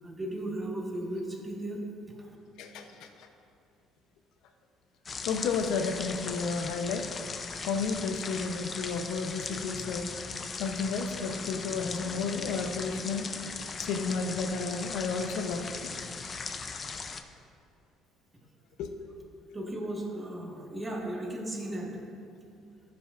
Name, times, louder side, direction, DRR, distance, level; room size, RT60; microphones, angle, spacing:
voice 1, 0.0-2.3 19.5-21.9, right 1 dB, 15° right, -1 dB, 1.5 m, -36 dB
voice 2, 2.6-3.3 5.2-7.0 7.7-10.1 10.6-13.2 13.8-15.9 18.8-18.9, left 4 dB, 75° left, 5 dB, 0.7 m, -32 dB
sound 1, 5.1-17.2, left 5 dB, 30° left, 0.5 m, -38 dB
15.0 x 6.0 x 2.5 m, 2.4 s
cardioid pair, 120°, 0 cm